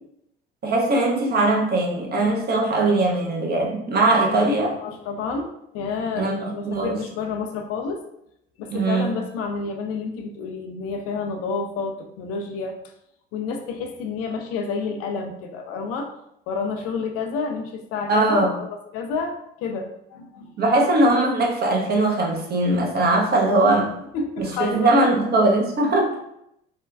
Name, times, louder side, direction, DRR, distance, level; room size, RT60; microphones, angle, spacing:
voice 1, 0.6-4.8 6.2-7.0 8.7-9.1 18.1-18.5 20.6-23.9 24.4-26.2, right 2 dB, 35° right, 0 dB, 0.7 m, -20 dB
voice 2, 4.3-8.0 8.6-12.8 13.3-16.1 16.5-18.7 18.9-20.5 23.6-23.8 24.1-25.1, left 4 dB, 55° left, 4 dB, 0.4 m, -30 dB
3.2 x 2.2 x 2.3 m, 0.78 s
figure-of-eight pair, 55°, 29 cm